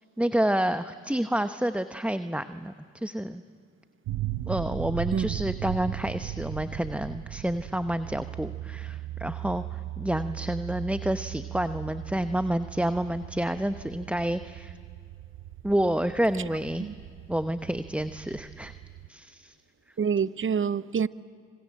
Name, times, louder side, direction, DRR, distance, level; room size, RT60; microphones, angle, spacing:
voice 1, 0.2-3.4 4.5-14.7 15.6-16.9 17.3-18.7 19.1-19.5, right 1 dB, 5° right, 0.9 m, -29 dB
sound 1, 4.1-19.1, right 13 dB, 70° right, 0.8 m, -38 dB
voice 2, 20.0-21.1, right 6 dB, 35° right, 0.8 m, -26 dB
26.5 x 26.0 x 7.6 m
hypercardioid pair, 40°, 34 cm